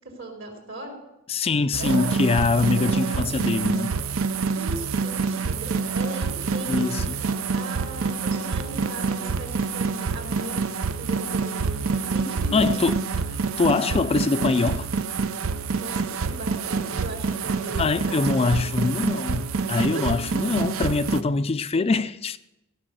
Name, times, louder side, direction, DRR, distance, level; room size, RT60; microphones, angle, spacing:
voice 1, 0.2-0.9 1.8-2.1 2.8-3.4 4.5-10.6 11.0-12.7 15.8-18.9 19.9-20.1, right 2 dB, 65° right, 3.5 m, -38 dB
voice 2, 1.3-3.9 6.7-7.2 12.5-13.0 13.6-14.9 17.8-22.4, left 3 dB, 30° left, 0.4 m, -23 dB
sound 1, 1.7-21.2, right 5 dB, 90° right, 0.6 m, -27 dB
16.0 x 6.2 x 7.8 m
head